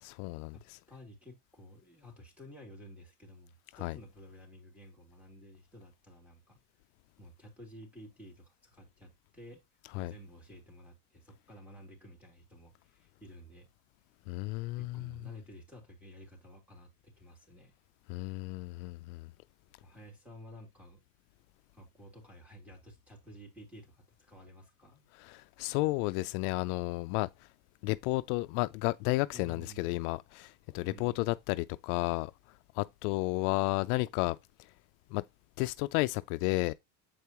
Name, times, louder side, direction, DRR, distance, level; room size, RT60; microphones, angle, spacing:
voice 1, 0.0-0.8 3.8-4.0 9.9-10.1 14.3-15.2 18.1-19.3 25.2-27.3 27.8-32.3 32.7-34.4 35.1-35.2 35.6-36.7, left 21 dB, 75° left, 0.5 m, -32 dB
voice 2, 0.9-6.6 7.2-9.6 9.9-13.7 14.5-17.7 19.8-21.0 21.7-25.1 29.3-29.9 30.8-31.4, equal, 5° right, 3.2 m, -53 dB
7.8 x 4.7 x 3.0 m
supercardioid pair, 125°, 44 cm